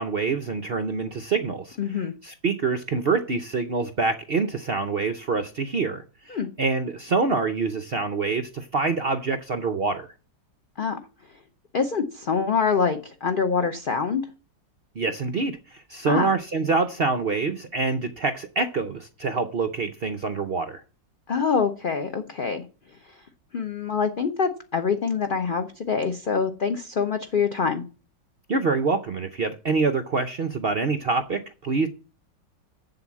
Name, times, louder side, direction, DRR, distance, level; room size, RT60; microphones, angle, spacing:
voice 1, 0.0-10.1 15.0-20.8 28.5-31.9, right 4 dB, 65° right, 0.6 m, -26 dB
voice 2, 1.8-2.1 6.3-6.5 10.8-11.0 11.7-14.2 16.1-16.3 21.3-22.6 23.5-27.8, left 5 dB, 45° left, 0.6 m, -25 dB
7.8 x 7.6 x 7.3 m
omnidirectional pair, 2.0 m